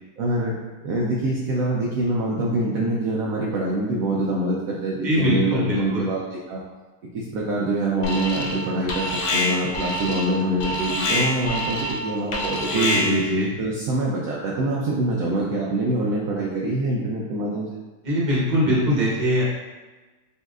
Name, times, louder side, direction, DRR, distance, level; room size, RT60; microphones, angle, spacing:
voice 1, 0.2-0.6 0.8-6.2 6.5-6.6 7.1-13.1 13.6-17.8, right 1 dB, 75° right, -4 dB, 0.8 m, -25 dB
voice 2, 5.0-6.1 12.7-13.5 18.0-19.4, equal, 30° right, -6 dB, 0.9 m, -22 dB
Alarm, 8.0-8.6 8.9-13.3, left 1 dB, 70° left, 1.2 m, -26 dB
5.4 x 2.8 x 2.4 m, 1.2 s
omnidirectional pair, 2.0 m